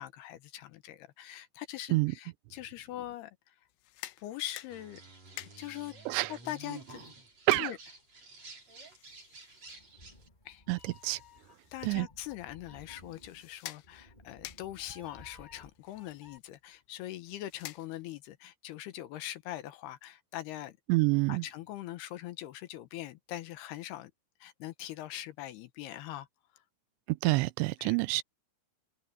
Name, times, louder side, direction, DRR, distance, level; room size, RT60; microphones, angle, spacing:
voice 1, 0.0-3.5 4.2-5.0 5.6-5.9 6.3-7.0 7.5-7.8 10.5-10.6 11.0-11.2 11.7-20.8 21.3-24.1 24.4-26.3 27.8-28.0, left 14 dB, 75° left, 2.8 m, -42 dB
sound 1, 3.7-18.3, left 16 dB, 90° left, 3.0 m, -52 dB
sound 2, 4.7-10.3, right 2 dB, 35° right, 7.6 m, -51 dB
Meow, 9.7-16.4, left 2 dB, 15° left, 1.5 m, -56 dB
voice 2, 10.7-11.2 11.8-12.1 20.9-21.4 27.1-28.2, right 22 dB, 85° right, 2.8 m, -27 dB
open air
omnidirectional pair, 5.0 m